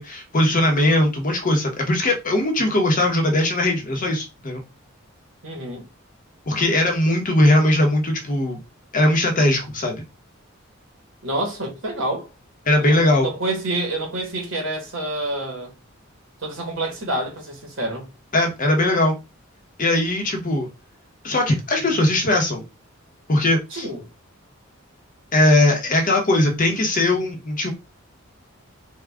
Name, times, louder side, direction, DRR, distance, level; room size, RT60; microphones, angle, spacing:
voice 1, 0.0-4.6 6.5-8.6 8.9-9.9 12.7-13.3 18.3-19.1 19.8-20.7 21.2-22.6 23.3-23.9 25.3-27.7, left 1 dB, 40° left, 0.9 m, -19 dB
voice 2, 5.4-5.8 11.2-12.3 12.8-15.7 16.4-18.1 23.7-24.0, right 1 dB, 70° right, 1.4 m, -28 dB
3.6 x 2.3 x 3.4 m
head